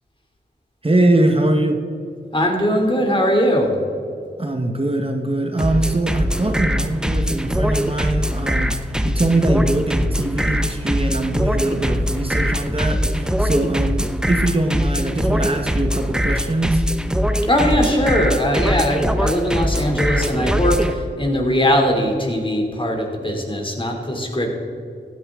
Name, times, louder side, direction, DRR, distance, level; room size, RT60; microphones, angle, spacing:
voice 1, 0.8-1.8 4.4-8.7 9.0-16.8, right 2 dB, 30° right, 4 dB, 1.3 m, -22 dB
voice 2, 2.3-3.7 17.5-24.5, equal, 25° left, 1 dB, 2.9 m, -20 dB
sound 1, 5.6-20.9, equal, 5° right, 0.8 m, -21 dB
15.0 x 11.0 x 3.7 m, 2.5 s
cardioid pair, 40°, 19 cm